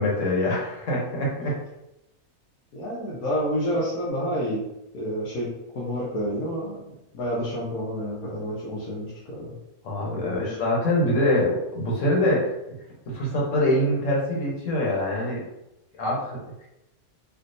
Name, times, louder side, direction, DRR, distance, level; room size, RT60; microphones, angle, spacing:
voice 1, 0.0-1.6 9.8-12.7 13.1-15.5 15.9-16.4, left 1 dB, 60° left, -3 dB, 1.2 m, -24 dB
voice 2, 2.7-4.6 4.9-9.6 10.0-10.6, equal, 90° left, -6 dB, 1.2 m, -29 dB
3.4 x 2.6 x 2.6 m, 0.89 s
omnidirectional pair, 1.5 m